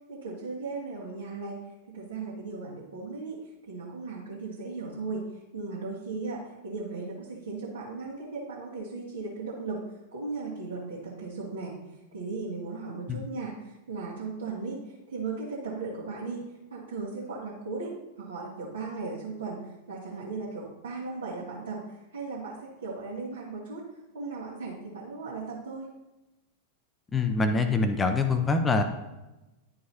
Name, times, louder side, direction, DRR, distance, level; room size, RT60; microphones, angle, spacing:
voice 1, 0.1-1.6 1.9-3.4 3.7-5.3 5.5-9.8 10.1-11.7 12.1-16.4 16.7-23.8 24.1-25.9, right 4 dB, 65° right, -6 dB, 1.5 m, -37 dB
voice 2, 27.1-28.8, left 3 dB, 15° left, 7 dB, 0.6 m, -24 dB
11.0 x 4.7 x 2.8 m, 1.0 s
figure-of-eight pair, 90°, 0 cm